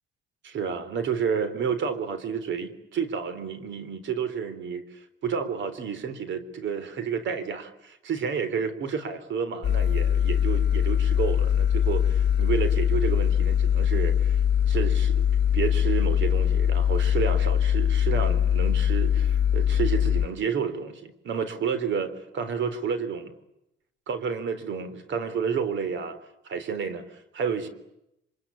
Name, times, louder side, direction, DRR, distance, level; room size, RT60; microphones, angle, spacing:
voice 1, 0.4-14.4 14.7-15.3 15.5-23.3 24.1-26.2 26.4-27.7, right 6 dB, 70° right, 12 dB, 3.6 m, -30 dB
sound 1, 9.6-20.3, left 9 dB, 60° left, 1.1 m, -22 dB
26.5 x 25.5 x 8.6 m, 0.83 s
cardioid pair, 90°, 20 cm